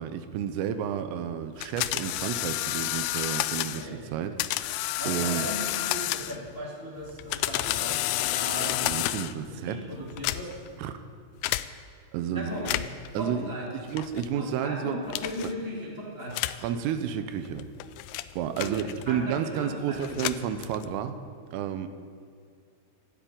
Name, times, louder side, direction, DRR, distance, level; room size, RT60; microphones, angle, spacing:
voice 1, 0.0-5.5 8.6-9.8 10.8-11.0 12.1-12.6 13.1-15.0 16.6-17.7 18.4-21.2 21.5-21.9, right 9 dB, 85° right, 9 dB, 3.4 m, -31 dB
sound 1, 1.6-3.9 4.4-6.5 7.1-9.4 10.1-10.7 11.4-11.7 12.5-13.1 14.0-14.3 15.1-15.5 16.3-16.7 17.5-19.2 20.0-21.0, left 16 dB, 85° left, 2.6 m, -30 dB
voice 2, 5.0-8.7 9.5-10.6 12.3-12.8 13.1-13.7 14.3-16.4 18.6-20.2, equal, 30° left, -5 dB, 1.1 m, -37 dB
12.5 x 12.5 x 8.8 m, 2.3 s
omnidirectional pair, 5.9 m